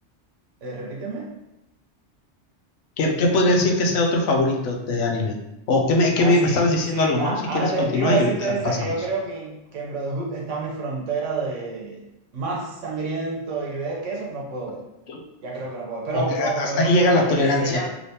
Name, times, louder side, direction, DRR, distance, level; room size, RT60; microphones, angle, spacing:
voice 1, 0.6-1.3 6.2-6.6 6.9-12.0 12.3-14.8 15.4-17.9, right 3 dB, 85° right, -2 dB, 1.2 m, -28 dB
voice 2, 3.0-5.4 5.7-8.9 15.1-15.2 16.1-17.9, left 2 dB, 80° left, 1 dB, 0.9 m, -21 dB
3.3 x 3.0 x 2.8 m, 0.89 s
omnidirectional pair, 1.2 m